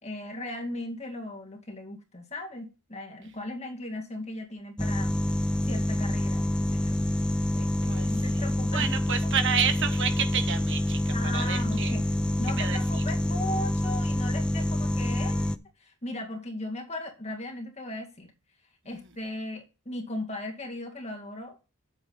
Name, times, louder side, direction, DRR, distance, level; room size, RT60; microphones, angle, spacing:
voice 1, 0.0-5.3 5.7-7.0 7.5-9.0 11.1-15.5 15.8-18.3 18.9-21.6, left 1 dB, 30° left, 2.2 m, -37 dB
sound 1, 4.8-15.6, left 1 dB, 5° left, 0.4 m, -27 dB
voice 2, 8.7-12.0 12.5-12.8 18.9-19.0, right 7 dB, 60° right, 1.4 m, -30 dB
9.1 x 7.9 x 4.0 m
head